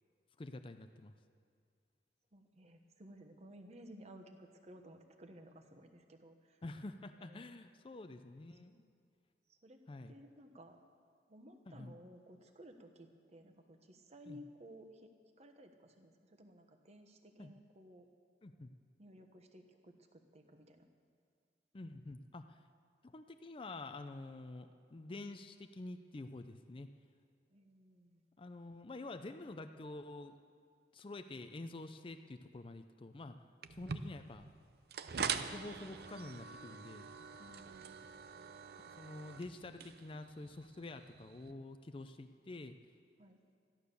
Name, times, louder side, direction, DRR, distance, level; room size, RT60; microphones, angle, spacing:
voice 1, 0.4-1.1 6.6-8.7 9.9-10.2 11.7-11.9 14.3-14.4 17.4-17.5 18.4-18.7 21.7-22.6 23.0-26.9 28.4-30.3 30.9-33.4 33.7-34.5 35.3-37.1 38.8-42.8, left 2 dB, 30° left, 8 dB, 0.5 m, -48 dB
voice 2, 2.3-6.6 7.2-7.6 8.7-8.8 9.5-9.8 10.1-10.8 11.3-15.1 15.4-18.1 19.0-20.9 27.5-28.2 37.4-38.0 38.3-38.6 43.2-43.4, equal, 40° right, 5 dB, 1.1 m, -57 dB
sound 1, 33.6-41.5, right 6 dB, 60° right, 0.6 m, -44 dB
13.5 x 11.5 x 6.9 m, 2.2 s
head